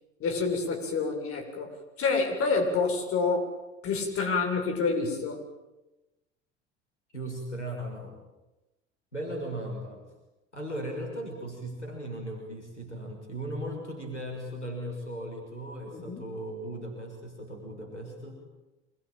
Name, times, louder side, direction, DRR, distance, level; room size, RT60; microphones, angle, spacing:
voice 1, 0.2-3.5 3.8-5.4 15.9-16.2, left 4 dB, 40° left, 3 dB, 7.9 m, -28 dB
voice 2, 7.1-8.2 9.1-10.1 10.5-18.4, right 1 dB, 85° left, 2 dB, 6.3 m, -37 dB
26.5 x 24.0 x 9.1 m, 1.0 s
figure-of-eight pair, 70°, 34 cm